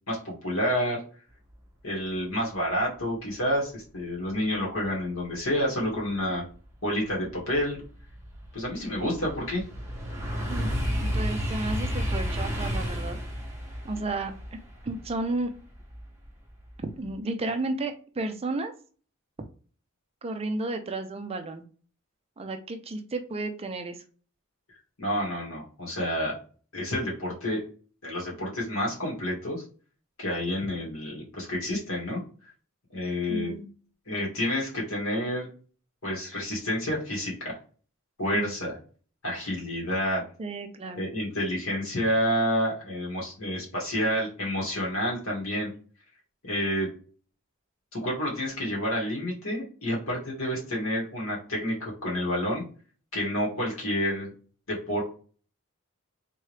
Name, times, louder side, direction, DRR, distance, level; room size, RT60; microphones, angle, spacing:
voice 1, 0.1-1.0 1.8-6.4 6.8-7.8 8.5-9.6 25.0-26.4 26.7-27.6 28.0-29.6 30.2-32.2 32.9-33.5 34.1-35.5 36.0-37.6 38.2-38.8 39.2-40.2 41.0-45.7 46.4-46.9 47.9-52.6 53.1-54.3 54.7-55.0, equal, 75° left, -3 dB, 1.8 m, -29 dB
sound 1, 6.6-6.7 7.2-16.3 16.7-17.1, equal, 15° right, 1.1 m, -32 dB
voice 2, 11.0-13.2 13.8-15.5 16.8-18.7 20.2-21.6 22.4-24.0 33.3-33.7 38.3-38.5 40.4-41.0, right 2 dB, 30° right, 7 dB, 0.4 m, -32 dB
3.7 x 3.0 x 3.2 m, 0.40 s
head